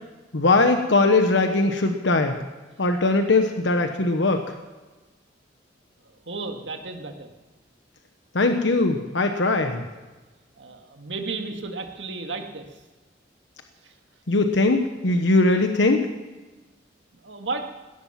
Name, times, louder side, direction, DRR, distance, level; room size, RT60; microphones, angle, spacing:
voice 1, 0.3-2.3 2.8-4.5 8.3-9.8 14.3-16.1, left 2 dB, 75° left, 5 dB, 1.2 m, -20 dB
voice 2, 6.0-7.3 10.6-12.7 13.8-13.9 17.2-17.6, right 3 dB, 80° right, 4 dB, 1.9 m, -33 dB
18.0 x 13.5 x 5.9 m, 1.2 s
head